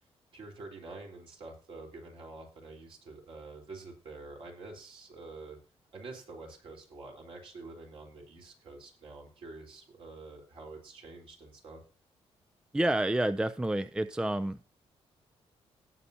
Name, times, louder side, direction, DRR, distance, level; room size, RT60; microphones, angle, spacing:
voice 1, 0.3-5.6 5.9-11.8, right 3 dB, 55° right, 1 dB, 3.9 m, -47 dB
voice 2, 12.7-14.6, right 1 dB, 5° right, 12 dB, 0.4 m, -29 dB
18.0 x 6.7 x 2.8 m, 0.39 s
cardioid pair, 140°, 11 cm